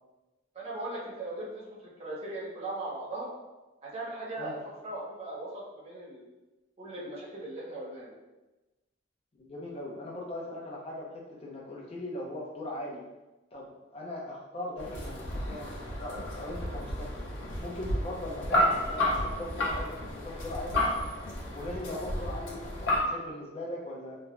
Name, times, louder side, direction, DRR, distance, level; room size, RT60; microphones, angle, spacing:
voice 1, 0.5-3.3 3.8-6.2 6.8-8.1, right 2 dB, 30° right, -6 dB, 0.7 m, -38 dB
voice 2, 9.4-13.0 13.5-17.2 17.6-20.8 21.5-24.2, left 1 dB, 30° left, -3 dB, 0.5 m, -39 dB
sound 1, 14.8-23.0, left 1 dB, 80° left, 0.6 m, -31 dB
3.1 x 2.1 x 2.4 m, 1.1 s
head